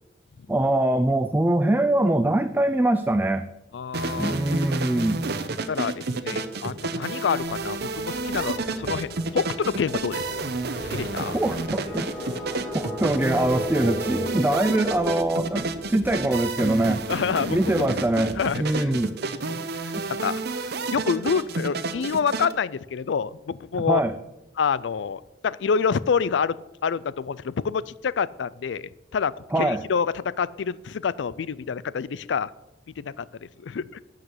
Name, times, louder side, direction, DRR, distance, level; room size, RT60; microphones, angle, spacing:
voice 1, 0.5-3.5 4.2-5.2 11.3-12.1 12.7-17.0 17.5-19.1 20.0-20.1 23.9-24.1 29.5-29.8, right 1 dB, 10° right, 10 dB, 0.4 m, -23 dB
voice 2, 3.7-4.4 5.7-10.5 10.9-11.4 15.5-15.6 17.1-18.0 18.4-18.9 19.5-24.0 24.6-26.6 26.8-32.5 33.0-33.3 33.6-34.0, left 6 dB, 75° left, 19 dB, 0.4 m, -27 dB
sound 1, 3.9-22.5, right 3 dB, 60° right, 0.8 m, -30 dB
sound 2, 6.5-16.8, left 1 dB, 5° left, 4.3 m, -37 dB
sound 3, 7.4-18.8, equal, 45° left, 3.5 m, -46 dB
11.5 x 4.9 x 7.9 m, 0.96 s
head